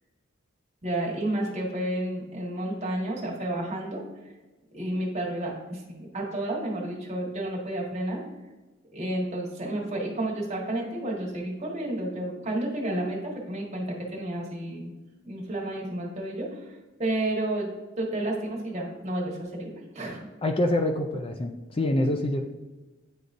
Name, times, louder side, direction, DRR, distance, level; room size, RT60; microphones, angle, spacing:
voice 1, 0.8-4.0 4.7-8.2 8.9-14.9 15.2-17.7 18.0-20.2, right 1 dB, 35° right, -3 dB, 1.4 m, -31 dB
voice 2, 20.4-22.4, left 1 dB, 25° left, 4 dB, 0.3 m, -26 dB
9.5 x 4.0 x 2.5 m, 1.2 s
head